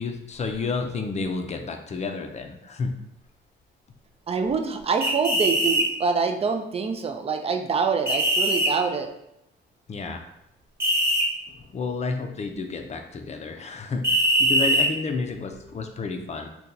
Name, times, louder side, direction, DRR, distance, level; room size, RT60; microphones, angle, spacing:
voice 1, 0.0-2.9 9.9-10.2 11.5-16.5, left 4 dB, 35° left, 5 dB, 0.5 m, -31 dB
voice 2, 4.3-9.1, right 5 dB, 30° right, 6 dB, 0.4 m, -25 dB
sound 1, 5.0-5.9 8.1-8.7 10.8-11.2 14.0-14.9, right 1 dB, 10° right, 0.9 m, -21 dB
2.8 x 2.2 x 3.8 m, 0.82 s
cardioid pair, 90°, 20 cm